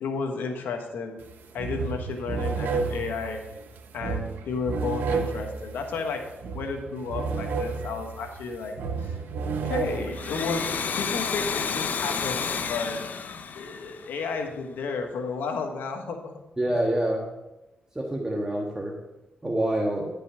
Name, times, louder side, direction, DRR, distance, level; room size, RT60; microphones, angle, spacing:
voice 1, 0.0-1.2 1.5-3.4 3.9-6.2 6.5-9.2 9.5-10.7 11.0-13.0 13.5-16.4, left 4 dB, 85° left, 4 dB, 1.3 m, -32 dB
sound 1, 1.2-1.3 1.6-10.8, right 4 dB, 80° right, 0.9 m, -32 dB
Domestic sounds home sounds, 10.0-14.5, left 6 dB, 60° left, 0.6 m, -31 dB
voice 2, 16.6-17.3 17.9-19.0 19.4-20.1, right 1 dB, 20° right, 0 dB, 1.4 m, -26 dB
10.5 x 5.4 x 5.6 m, 1.0 s
cardioid pair, 70°, 3 cm